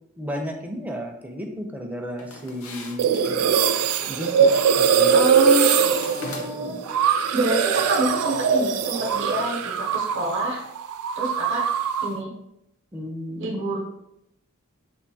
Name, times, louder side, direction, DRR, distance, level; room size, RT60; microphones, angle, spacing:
voice 1, 0.2-3.6 4.0-5.2 6.5-6.8 12.9-13.6, equal, 5° right, 2 dB, 0.4 m, -34 dB
sound 1, 2.2-3.4 4.4-4.9 5.3-6.8, left 2 dB, 75° left, 0.6 m, -38 dB
sound 2, 3.0-10.4 10.6-12.2, right 7 dB, 85° right, 0.3 m, -21 dB
voice 2, 5.1-6.8 7.3-10.6 11.2-11.7 12.0-12.3 13.4-13.8, right 1 dB, 60° right, -1 dB, 0.7 m, -27 dB
4.4 x 2.5 x 2.7 m, 0.83 s
head